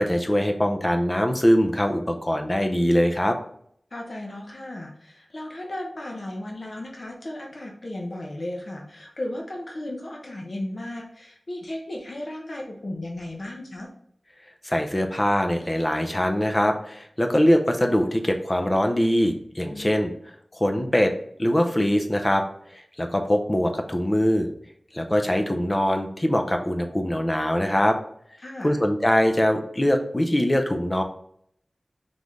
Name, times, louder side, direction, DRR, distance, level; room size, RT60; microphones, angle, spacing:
voice 1, 0.0-3.4 14.6-20.1 20.5-21.1 21.4-22.4 22.7-24.5 24.9-28.0 28.6-31.0, equal, 25° left, 5 dB, 0.5 m, -22 dB
voice 2, 3.9-13.9 19.7-20.0 28.4-28.8, left 1 dB, 55° left, 0 dB, 0.8 m, -35 dB
3.9 x 3.2 x 3.6 m, 0.66 s
wide cardioid pair, 80°, 0 cm